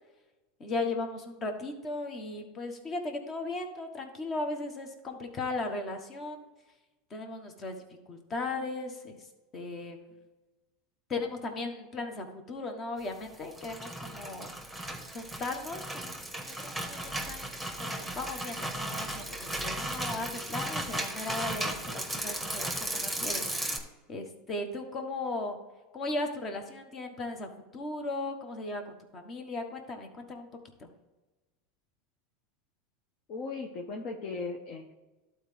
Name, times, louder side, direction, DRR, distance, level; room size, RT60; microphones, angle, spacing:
voice 1, 0.6-6.5 7.1-9.3 9.5-10.1 11.1-14.5 15.1-23.7 24.1-25.6 25.9-30.5 30.8-30.9, left 2 dB, 35° left, 5 dB, 1.4 m, -37 dB
sound 1, 13.3-23.8, right 1 dB, 5° left, 1.5 m, -35 dB
voice 2, 33.3-34.9, left 4 dB, 55° left, 1 dB, 1.0 m, -37 dB
12.0 x 4.4 x 3.4 m, 1.1 s
hypercardioid pair, 100°, 0 cm